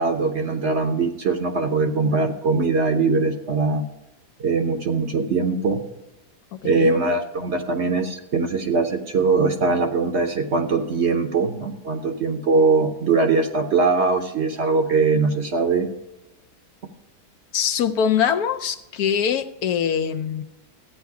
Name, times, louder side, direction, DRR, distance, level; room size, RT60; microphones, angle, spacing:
voice 1, 0.0-3.9 4.4-5.8 6.6-15.9, right 4 dB, 50° right, 5 dB, 1.0 m, -21 dB
voice 2, 6.5-7.0 17.5-20.4, left 8 dB, 70° left, 7 dB, 1.1 m, -23 dB
13.5 x 9.2 x 4.7 m, 0.99 s
omnidirectional pair, 1.8 m